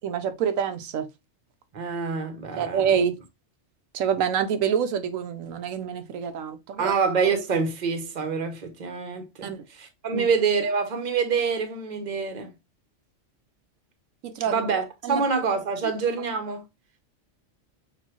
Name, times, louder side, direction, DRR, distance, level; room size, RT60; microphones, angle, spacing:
voice 1, 0.0-1.1 2.6-3.2 3.9-6.9 9.4-9.6 10.1-10.3 14.2-14.7 15.0-15.2, right 8 dB, 90° right, 1.1 m, -26 dB
voice 2, 1.7-2.9 6.8-12.5 14.5-16.6, right 5 dB, 40° right, 0.9 m, -26 dB
6.6 x 2.7 x 2.9 m
omnidirectional pair, 1.3 m